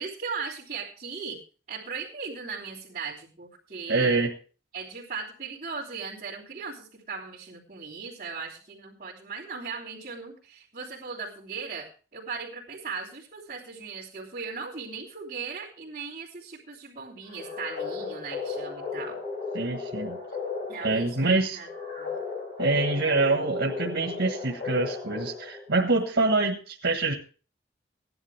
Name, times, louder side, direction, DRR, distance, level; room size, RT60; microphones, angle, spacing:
voice 1, 0.0-1.4 1.7-4.2 4.7-19.2 20.7-21.7 22.0-22.1, right 5 dB, 40° right, -12 dB, 3.3 m, -38 dB
voice 2, 3.9-4.3 19.5-20.2 20.8-21.6 22.6-27.1, right 3 dB, 85° right, 1 dB, 1.6 m, -25 dB
sound 1, 17.3-25.7, left 4 dB, 55° left, 5.8 m, -35 dB
16.5 x 11.0 x 3.4 m, 0.37 s
head